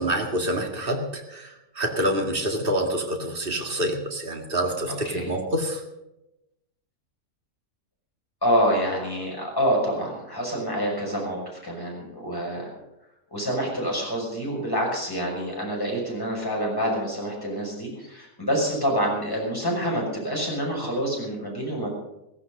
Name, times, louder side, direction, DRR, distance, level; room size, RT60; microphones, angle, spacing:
voice 1, 0.0-5.8, right 1 dB, 35° right, 3 dB, 2.3 m, -27 dB
voice 2, 4.9-5.3 8.4-12.7 13.3-21.9, equal, 15° left, -2 dB, 6.2 m, -27 dB
16.0 x 15.5 x 5.3 m, 0.91 s
omnidirectional pair, 1.5 m